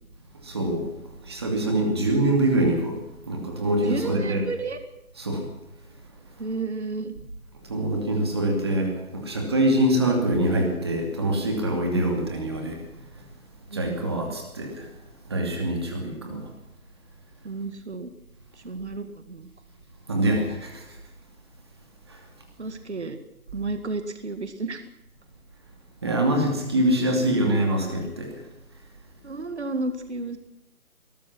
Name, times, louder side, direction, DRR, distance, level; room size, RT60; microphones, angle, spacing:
voice 1, 0.4-0.9 1.2-3.0 3.3-4.4 5.2-5.5 7.7-12.8 13.7-14.9 15.3-16.4 20.1-20.8 22.1-22.2 26.0-28.3, right 1 dB, 15° right, 2 dB, 2.7 m, -24 dB
voice 2, 1.7-2.0 3.9-4.8 6.4-7.1 13.7-14.0 15.8-16.5 17.4-18.1 18.5-19.5 22.6-23.2 23.5-24.8 29.2-30.4, right 3 dB, 50° right, 8 dB, 2.0 m, -32 dB
22.0 x 19.5 x 6.2 m, 0.92 s
figure-of-eight pair, 180°, 44 cm